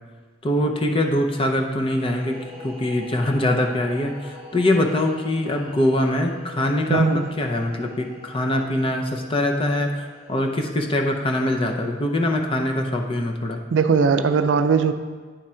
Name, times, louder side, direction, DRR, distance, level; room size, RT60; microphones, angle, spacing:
voice 1, 0.4-2.4 2.6-7.1 7.4-13.6, left 1 dB, 30° left, 2 dB, 0.6 m, -23 dB
sound 1, 1.9-11.4, left 1 dB, ahead, 2.2 m, -44 dB
voice 2, 6.9-7.3 13.7-14.9, right 5 dB, 75° right, 9 dB, 0.4 m, -19 dB
10.0 x 3.6 x 4.3 m, 1.4 s
head